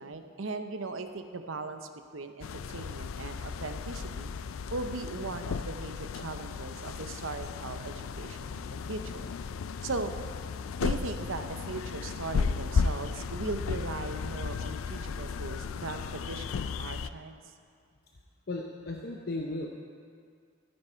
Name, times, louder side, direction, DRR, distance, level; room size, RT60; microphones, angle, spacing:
voice 1, 0.0-1.8 2.1-4.3 4.7-9.3 9.8-10.1 10.8-17.4, right 3 dB, 75° right, 8 dB, 0.8 m, -38 dB
sound 1, 2.4-17.1, left 5 dB, 85° left, 0.4 m, -34 dB
voice 2, 18.5-19.7, left 2 dB, 50° left, 0 dB, 0.8 m, -35 dB
14.5 x 9.6 x 4.5 m, 2.2 s
head